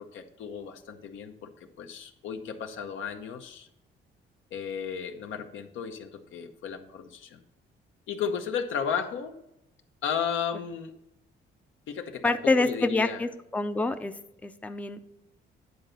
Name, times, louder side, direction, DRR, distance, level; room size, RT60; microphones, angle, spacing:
voice 1, 0.0-1.5 1.8-3.7 4.5-7.4 8.1-9.4 10.0-10.9 11.9-13.2, left 7 dB, 80° left, 6 dB, 0.9 m, -34 dB
voice 2, 12.2-14.1 14.4-15.0, left 3 dB, 5° left, 9 dB, 0.5 m, -26 dB
9.5 x 4.0 x 5.6 m, 0.85 s
cardioid pair, 90°, 20 cm